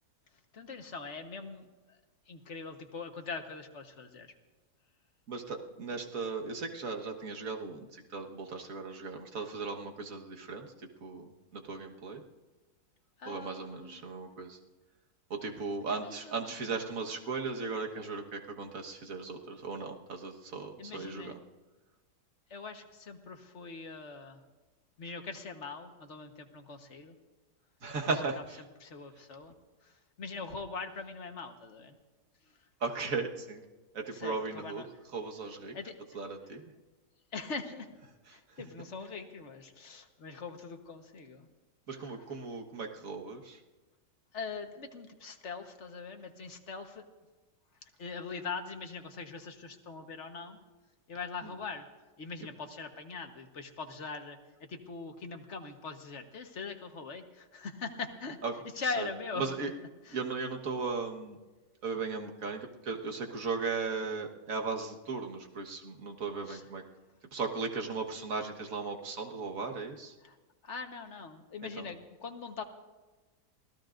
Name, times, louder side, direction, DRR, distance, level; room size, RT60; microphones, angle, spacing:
voice 1, 0.5-2.0 2.3-4.3 13.2-14.0 15.9-16.8 20.8-21.3 22.5-24.4 25.0-27.1 28.8-29.5 29.8-31.9 34.1-34.9 35.7-36.0 37.3-37.9 38.3-41.5 41.9-42.2 44.3-47.0 48.0-50.6 51.1-51.9 52.2-54.4 54.7-58.4 58.8-59.4 60.0-60.2 66.5-66.6 70.2-70.3 70.6-72.6, left 4 dB, 45° left, 5 dB, 1.5 m, -42 dB
voice 2, 5.3-10.7 11.0-12.2 13.3-14.6 15.3-21.4 27.8-28.6 32.8-33.6 33.9-34.8 35.1-35.8 36.1-36.6 41.9-43.6 51.4-51.5 52.4-52.5 58.4-58.5 58.8-59.1 59.4-59.7 60.1-61.4 61.8-66.8 67.3-70.1 71.6-71.9, right 4 dB, 55° right, 2 dB, 1.8 m, -37 dB
27.5 x 17.0 x 2.6 m, 1.2 s
omnidirectional pair, 1.7 m